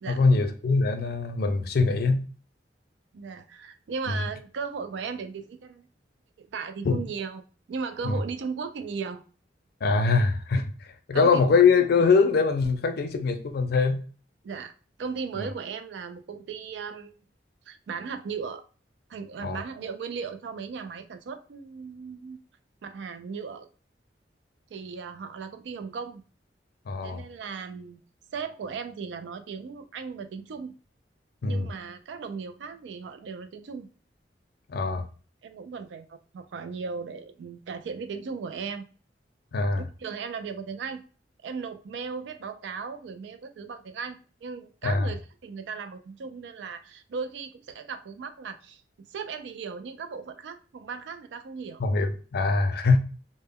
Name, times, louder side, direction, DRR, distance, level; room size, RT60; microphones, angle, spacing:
voice 1, 0.1-2.2 6.8-7.0 8.0-8.2 9.8-14.0 15.4-15.5 19.4-19.6 26.9-27.2 31.4-31.7 34.7-35.0 39.5-39.8 44.8-45.1 51.8-53.0, left 4 dB, 60° left, 0.4 m, -23 dB
voice 2, 3.1-5.9 6.4-7.4 7.7-9.2 11.1-11.5 14.4-14.7 15.0-17.1 17.7-18.6 19.1-22.4 22.8-23.7 24.7-26.2 27.0-28.0 28.3-30.7 31.4-33.9 34.9-35.1 35.4-38.8 39.8-41.0 41.4-48.8 49.1-51.8, right 5 dB, 70° right, 0.3 m, -37 dB
2.1 x 2.0 x 3.4 m
head